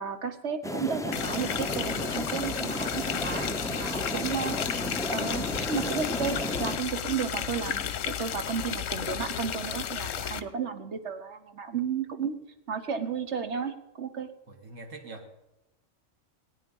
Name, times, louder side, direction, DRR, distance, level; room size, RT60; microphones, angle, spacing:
voice 1, 0.0-4.5 5.1-12.4 12.7-14.3, right 6 dB, 60° right, 9 dB, 1.4 m, -33 dB
sound 1, 0.6-6.8, left 1 dB, 5° left, 0.4 m, -33 dB
Fountain in Winterthur, 1.1-10.4, left 9 dB, 85° left, 1.1 m, -33 dB
voice 2, 14.5-15.4, right 2 dB, 80° right, 1 dB, 2.1 m, -44 dB
19.0 x 9.1 x 5.4 m, 0.94 s
omnidirectional pair, 1.3 m